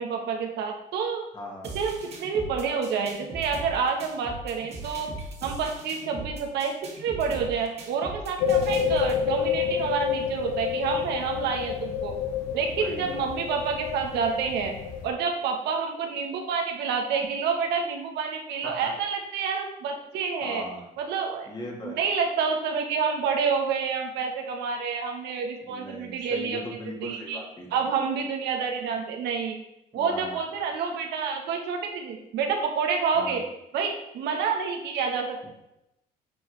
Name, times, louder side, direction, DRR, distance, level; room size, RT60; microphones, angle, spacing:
voice 1, 0.0-1.2 1.7-5.1 5.4-12.1 12.5-14.7 15.0-20.6 21.0-21.5 21.8-26.6 27.0-27.4 27.7-29.6 29.9-33.4 33.7-35.5, right 6 dB, 80° right, 2 dB, 1.2 m, -28 dB
voice 2, 1.3-1.8 8.5-8.7 12.8-13.3 18.6-18.9 20.4-20.9 21.5-22.1 25.6-27.8 29.9-30.4 33.1-33.4, left 1 dB, 25° left, 0 dB, 1.8 m, -39 dB
sound 1, 1.6-9.2, right 2 dB, 40° right, 1.9 m, -40 dB
sound 2, 8.4-15.1, left 7 dB, 85° left, 0.8 m, -29 dB
9.4 x 4.7 x 3.2 m, 0.86 s
cardioid pair, 110°, 17 cm